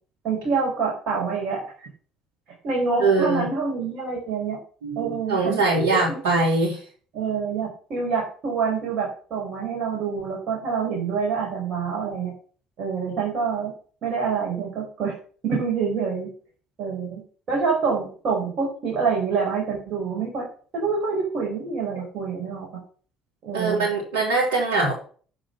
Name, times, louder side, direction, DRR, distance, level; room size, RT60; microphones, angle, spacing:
voice 1, 0.2-1.9 2.6-4.6 5.0-5.6 5.9-6.2 7.1-12.3 12.8-13.7 14.0-15.1 15.4-16.3 16.8-17.2 17.5-20.5 20.7-22.8 23.4-23.8, right 5 dB, 50° right, -3 dB, 5.3 m, -26 dB
voice 2, 3.0-3.4 4.8-6.8 23.5-24.9, right 3 dB, 70° right, -4 dB, 3.4 m, -22 dB
9.6 x 6.5 x 7.2 m, 0.42 s
figure-of-eight pair, 55°, 0 cm